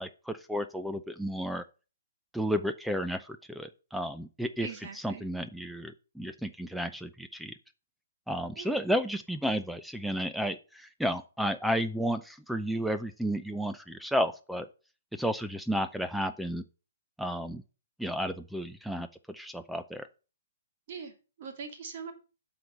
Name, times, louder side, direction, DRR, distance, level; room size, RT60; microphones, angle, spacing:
voice 1, 0.0-1.6 2.3-4.7 5.0-7.5 8.3-14.7 15.1-16.6 17.2-17.6 18.0-20.1, equal, ahead, 10 dB, 0.4 m, -32 dB
voice 2, 4.6-5.3 8.6-8.8 20.9-22.1, right 5 dB, 50° right, 5 dB, 2.2 m, -42 dB
7.6 x 4.0 x 6.5 m, 0.34 s
hypercardioid pair, 145°, 0 cm